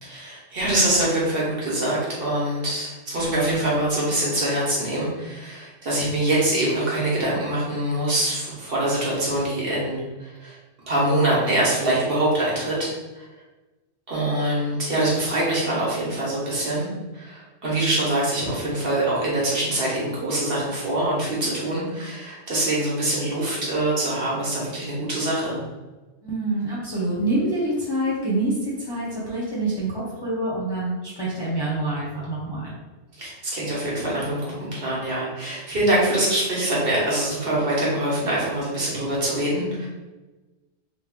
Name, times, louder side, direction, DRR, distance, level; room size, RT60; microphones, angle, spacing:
voice 1, 0.0-10.6 10.9-12.9 13.2-13.3 14.1-16.9 17.1-25.6 33.2-39.9, right 1 dB, 55° right, -6 dB, 1.2 m, -24 dB
voice 2, 26.2-32.7, right 2 dB, 25° left, -8 dB, 0.7 m, -26 dB
3.5 x 2.1 x 3.6 m, 1.2 s
omnidirectional pair, 1.2 m